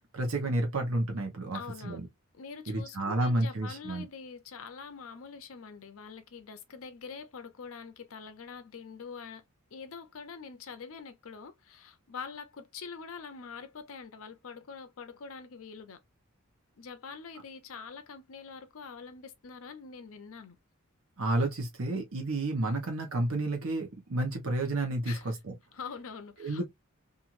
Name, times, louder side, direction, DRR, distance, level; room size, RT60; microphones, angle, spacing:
voice 1, 0.1-2.1 2.7-4.1 21.2-25.5 26.4-26.7, right 2 dB, 65° right, 0.8 m, -31 dB
voice 2, 1.5-2.1 2.3-9.4 9.7-16.0 16.8-20.6 25.0-25.4 25.7-26.7, left 5 dB, 65° left, 0.5 m, -45 dB
2.9 x 2.5 x 2.4 m
head